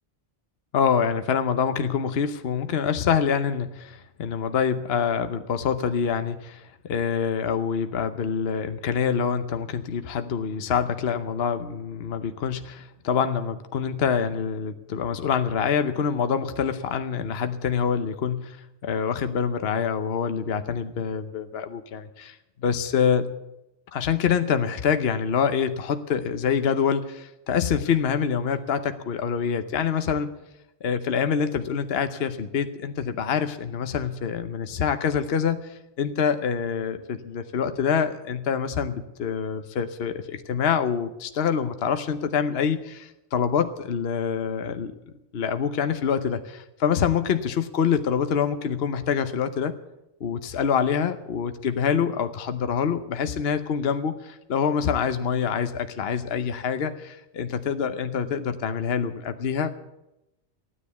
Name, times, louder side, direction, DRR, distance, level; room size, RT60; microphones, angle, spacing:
voice 1, 0.7-18.6 18.8-22.3 22.6-23.3 23.9-30.3 30.8-44.9 45.3-49.7 50.2-59.7, left 7 dB, 60° left, 9 dB, 1.1 m, -26 dB
15.5 x 10.0 x 8.2 m, 0.91 s
omnidirectional pair, 1.2 m